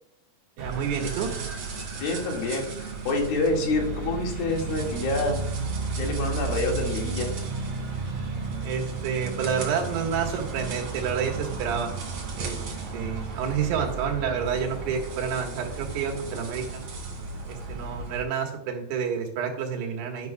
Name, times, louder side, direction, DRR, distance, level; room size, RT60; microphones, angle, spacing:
sound 1, 0.6-18.2, right 4 dB, 50° right, 3.3 m, -33 dB
voice 1, 0.6-1.3 8.6-12.0 12.4-12.6 12.9-16.8 17.5-20.3, right 7 dB, 85° right, 2 dB, 3.6 m, -29 dB
voice 2, 2.0-5.4 6.0-7.3, left 3 dB, 70° left, 0 dB, 3.8 m, -27 dB
11.5 x 11.0 x 2.3 m, 0.70 s
omnidirectional pair, 4.5 m